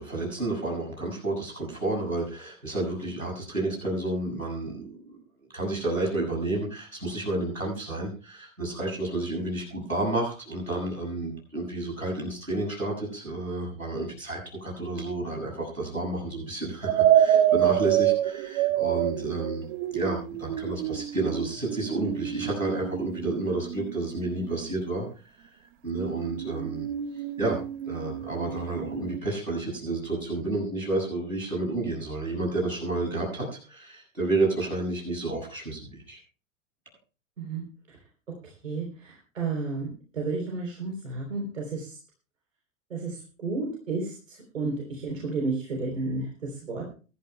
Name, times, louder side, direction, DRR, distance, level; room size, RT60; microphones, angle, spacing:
voice 1, 0.0-5.2 5.5-19.7 19.9-25.1 25.4-25.5 25.8-26.9 27.4-36.2, right 2 dB, 85° right, 0 dB, 6.6 m, -30 dB
sound 1, 16.8-24.7 25.9-29.2, right 12 dB, 40° right, 0.8 m, -27 dB
voice 2, 38.4-42.0 42.9-46.8, right 3 dB, 70° right, 0 dB, 3.6 m, -32 dB
23.0 x 12.0 x 2.2 m, 0.35 s
figure-of-eight pair, 90°, 40 cm